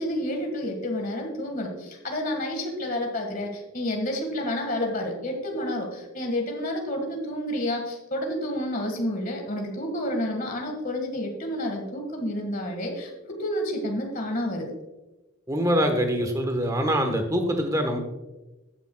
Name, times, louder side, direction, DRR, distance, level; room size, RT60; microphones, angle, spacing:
voice 1, 0.0-13.1 13.4-14.7, left 1 dB, 40° left, 2 dB, 1.7 m, -29 dB
voice 2, 15.5-18.0, equal, 15° right, 5 dB, 1.2 m, -24 dB
14.0 x 9.6 x 2.3 m, 1.1 s
head